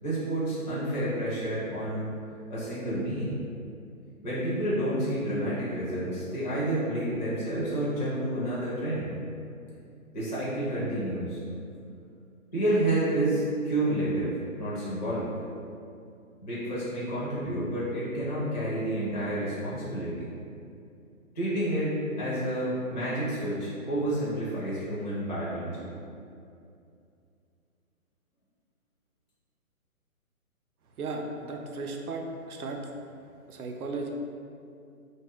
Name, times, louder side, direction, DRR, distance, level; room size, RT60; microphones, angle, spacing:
voice 1, 0.0-2.1 2.5-3.4 4.2-9.1 10.1-11.4 12.5-15.3 16.4-20.3 21.4-25.9, right 1 dB, 30° left, -9 dB, 0.4 m, -29 dB
voice 2, 31.0-32.8 33.5-34.1, right 3 dB, 80° right, 2 dB, 0.5 m, -35 dB
2.6 x 2.1 x 3.4 m, 2.5 s
figure-of-eight pair, 145°, 44 cm